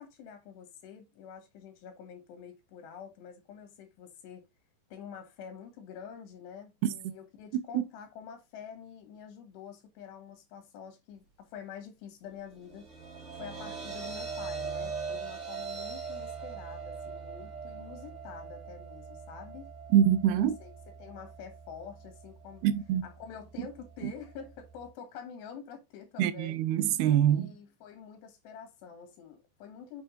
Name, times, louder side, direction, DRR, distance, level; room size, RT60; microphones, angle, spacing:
voice 1, 0.0-4.5 4.9-12.9 13.3-19.7 20.4-20.7 21.0-22.6 23.0-26.6 27.3-30.0, left 7 dB, 85° left, 3.7 m, -47 dB
voice 2, 6.8-7.1 7.7-7.8 19.9-20.6 22.6-23.0 24.0-24.1 26.2-27.5, right 10 dB, 80° right, 2.8 m, -25 dB
sound 1, 12.5-24.9, right 5 dB, 20° right, 2.5 m, -42 dB
7.8 x 6.5 x 3.8 m
omnidirectional pair, 4.8 m